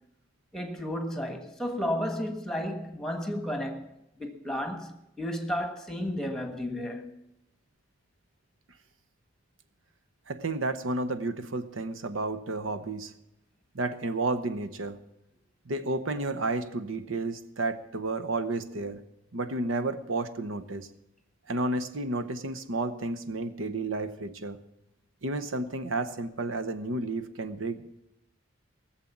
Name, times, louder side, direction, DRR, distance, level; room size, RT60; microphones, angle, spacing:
voice 1, 0.5-7.1, left 1 dB, 5° left, 1.4 m, -33 dB
voice 2, 10.3-13.1 13.7-15.0 15.7-19.0 19.3-20.9 21.5-24.6 25.2-28.0, right 2 dB, 85° right, 0.9 m, -31 dB
18.5 x 7.5 x 7.2 m
head